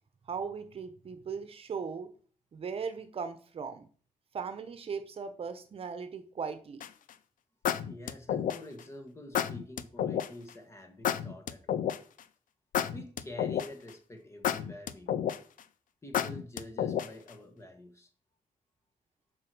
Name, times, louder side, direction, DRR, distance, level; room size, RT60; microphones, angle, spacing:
voice 1, 0.3-2.1 2.5-3.9 4.3-6.8, right 6 dB, 45° right, 1.0 m, -38 dB
sound 1, 6.8-7.1 7.7-8.8 9.3-10.3 11.0-12.2 12.7-13.9 14.4-15.6 16.1-17.3, left 9 dB, 85° left, 0.7 m, -30 dB
voice 2, 7.9-11.9 12.9-15.4 16.0-18.1, left 1 dB, 20° left, 1.4 m, -47 dB
7.5 x 6.2 x 6.1 m
wide cardioid pair, 170°, 13 cm